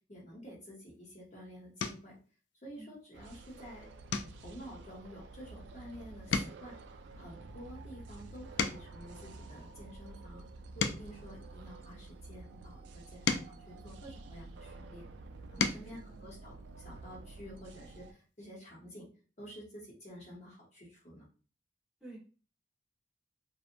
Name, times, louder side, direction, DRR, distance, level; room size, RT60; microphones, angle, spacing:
voice 1, 0.1-2.2 2.6-3.9 4.3-6.8 7.1-10.4 10.7-15.1 15.5-19.1 19.4-21.2, equal, 40° left, -4 dB, 0.9 m, -50 dB
sound 1, 0.9-1.2 1.8-2.2 2.7-3.0 3.4-3.6 4.1-5.9 6.2-9.1 9.7-12.2 12.8-14.7 15.2-16.0 17.4-17.5 17.8-17.9, left 5 dB, 75° left, 0.3 m, -38 dB
voice 2, 2.8-2.9 15.6-15.8 16.1-16.2 22.0-22.2, right 2 dB, 5° right, -4 dB, 0.9 m, -47 dB
sound 2, 3.1-18.1, right 3 dB, 90° right, 0.3 m, -50 dB
2.8 x 2.2 x 2.5 m, 0.37 s
head